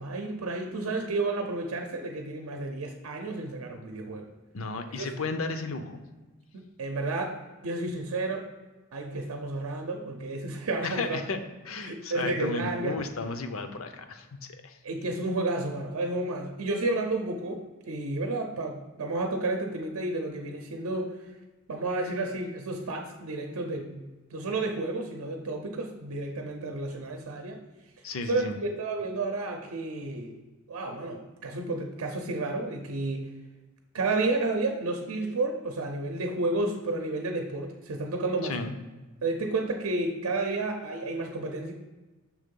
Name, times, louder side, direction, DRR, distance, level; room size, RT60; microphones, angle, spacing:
voice 1, 0.0-4.3 5.0-5.1 6.5-7.4 7.6-8.4 8.9-11.2 11.8-13.0 14.8-21.2 21.7-27.6 28.3-30.3 30.7-33.3 33.9-38.6 39.2-41.7, right 2 dB, 85° right, 3 dB, 0.6 m, -31 dB
voice 2, 4.5-6.0 10.8-11.4 11.6-14.3 14.6-14.8 28.0-28.5 38.4-38.7, left 3 dB, 70° left, 8 dB, 0.6 m, -33 dB
6.2 x 3.7 x 5.3 m, 1.2 s
head